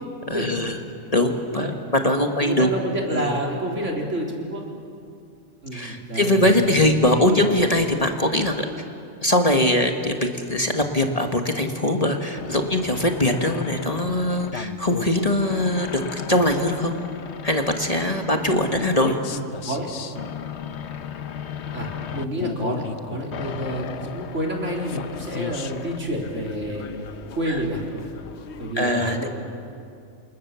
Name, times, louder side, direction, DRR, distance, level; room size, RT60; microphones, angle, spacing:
voice 1, 0.3-0.8 1.1-2.7 3.1-3.4 5.7-8.7 9.2-16.9 17.4-19.2 27.4-27.6 28.8-29.3, left 1 dB, 30° left, 4 dB, 1.8 m, -22 dB
voice 2, 2.4-4.6 5.6-6.8 18.7-18.8 19.3-19.9 21.7-26.9 27.3-27.8 28.6-29.3, right 1 dB, 65° right, 0 dB, 3.9 m, -29 dB
sound 1, 12.3-28.7, left 7 dB, 60° left, 1.1 m, -35 dB
28.0 x 27.5 x 7.1 m, 2.4 s
omnidirectional pair, 1.3 m